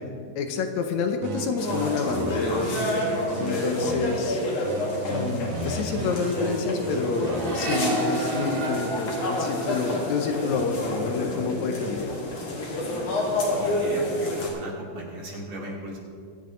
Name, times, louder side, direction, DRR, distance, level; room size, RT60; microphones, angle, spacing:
voice 1, 0.4-2.8 3.4-4.4 5.1-12.2, left 5 dB, 75° left, 5 dB, 2.0 m, -29 dB
sound 1, 1.2-4.2 4.6-7.6, right 2 dB, 75° right, 2.5 m, -35 dB
sound 2, 1.6-14.5, left 1 dB, 55° left, 3.0 m, -29 dB
Accelerating revving vroom, 5.3-12.6 12.9-13.5, right 3 dB, 25° right, 1.3 m, -33 dB
voice 2, 13.5-16.0, right 1 dB, 55° right, -4 dB, 3.7 m, -38 dB
25.0 x 8.8 x 3.1 m, 2.4 s
omnidirectional pair, 3.5 m